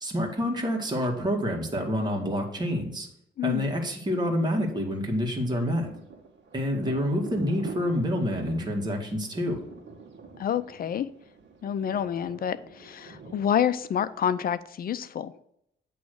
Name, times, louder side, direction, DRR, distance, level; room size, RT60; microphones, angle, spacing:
voice 1, 0.0-3.1 3.4-5.9 6.5-9.6, equal, 20° right, 0 dB, 1.9 m, -27 dB
Thunder, 5.2-14.7, right 5 dB, 65° right, 1.5 m, -46 dB
voice 2, 10.4-11.1 11.6-15.3, left 9 dB, 50° left, 14 dB, 0.5 m, -28 dB
8.4 x 3.1 x 6.4 m, 0.74 s
cardioid pair, 90°, 20 cm